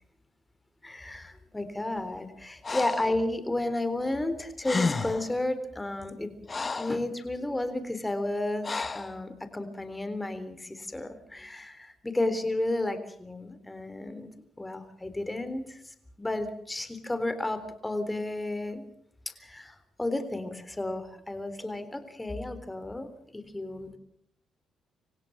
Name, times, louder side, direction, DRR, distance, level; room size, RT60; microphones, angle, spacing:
voice 1, 0.8-6.3 6.7-14.3 14.6-18.8 19.3-24.0, left 2 dB, 15° left, 10 dB, 3.6 m, -32 dB
Breathing, 2.6-3.2 4.3-4.4 4.6-5.3 6.0-7.0 8.6-9.1, left 4 dB, 30° left, 1.2 m, -31 dB
26.5 x 16.5 x 7.3 m, 0.67 s
cardioid pair, 90°, 0 cm